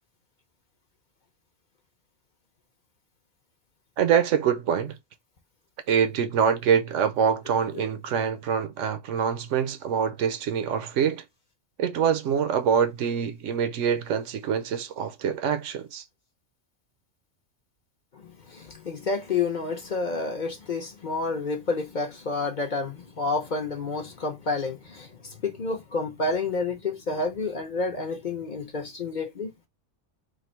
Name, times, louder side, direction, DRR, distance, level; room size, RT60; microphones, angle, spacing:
voice 1, 4.0-4.9 5.9-11.2 11.8-16.0, right 7 dB, 75° right, 0.9 m, -25 dB
voice 2, 18.1-29.5, left 3 dB, 45° left, 0.8 m, -29 dB
3.3 x 2.6 x 4.3 m
omnidirectional pair, 1.3 m